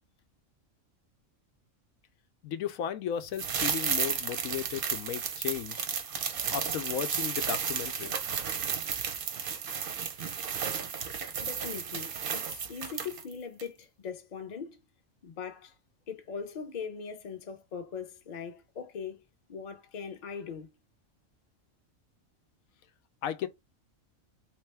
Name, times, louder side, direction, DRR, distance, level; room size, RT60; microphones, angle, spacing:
voice 1, 2.4-5.9 6.5-8.1 23.2-23.5, left 9 dB, 90° left, 1.0 m, -35 dB
sound 1, 3.3-13.3 13.6-13.7, right 7 dB, 55° right, 0.7 m, -33 dB
voice 2, 11.4-14.8 15.2-15.8 16.1-19.2 19.5-20.8, left 6 dB, 40° left, 0.7 m, -40 dB
3.3 x 3.0 x 3.3 m
omnidirectional pair, 1.4 m